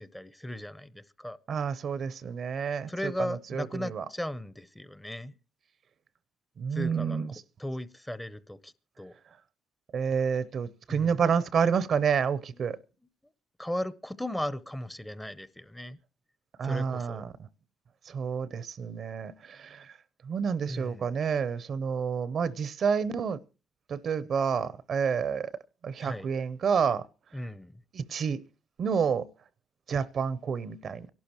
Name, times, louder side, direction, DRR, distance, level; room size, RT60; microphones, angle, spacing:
voice 1, 0.0-1.4 2.9-5.3 6.7-7.2 7.6-9.1 10.9-11.2 13.6-16.0 16.6-17.2 20.7-21.1 26.0-26.3 27.3-27.8, left 1 dB, 10° left, 0.7 m, -36 dB
voice 2, 1.5-4.0 6.6-7.3 9.9-12.8 16.6-17.3 18.1-20.0 20.2-23.4 23.9-25.5 25.8-27.0 27.9-28.4 28.8-29.3 29.9-31.1, right 6 dB, 55° right, 0.6 m, -29 dB
25.5 x 12.0 x 3.0 m
cardioid pair, 90°, 0 cm